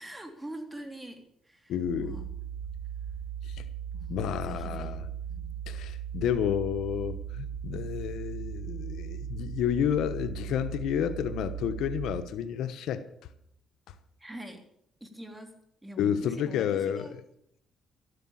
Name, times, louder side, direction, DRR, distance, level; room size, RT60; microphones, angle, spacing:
voice 1, 0.0-2.3 3.9-5.5 14.2-14.6 15.0-15.6 15.8-17.2, right 1 dB, 10° right, 3.3 m, -44 dB
voice 2, 1.7-2.2 3.4-3.6 4.1-5.0 5.7-13.0 13.9-14.0 16.0-17.1, left 9 dB, 80° left, 1.0 m, -30 dB
sound 1, 1.9-12.2, right 8 dB, 50° right, 2.0 m, -38 dB
13.5 x 11.5 x 7.2 m
cardioid pair, 90°, 0 cm